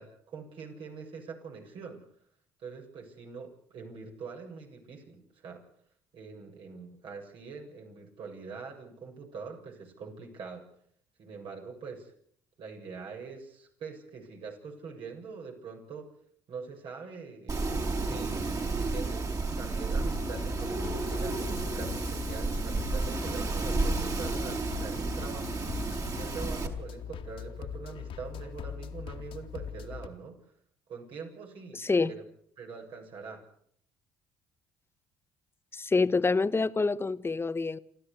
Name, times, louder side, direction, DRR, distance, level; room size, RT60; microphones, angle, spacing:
voice 1, 0.0-2.0 2.6-5.6 6.1-10.7 11.2-12.1 12.6-16.1 16.5-19.3 19.6-25.5 26.1-30.4 30.9-31.9 32.6-33.4, right 5 dB, 60° right, 2 dB, 7.3 m, -43 dB
Wind, 17.5-26.7, right 3 dB, 35° right, 4.8 m, -32 dB
sound 1, 20.1-30.1, left 7 dB, 65° left, 2.5 m, -41 dB
voice 2, 31.7-32.1 35.7-37.8, left 4 dB, 25° left, 15 dB, 1.3 m, -27 dB
29.0 x 13.0 x 8.3 m, 0.64 s
hypercardioid pair, 60°, 10 cm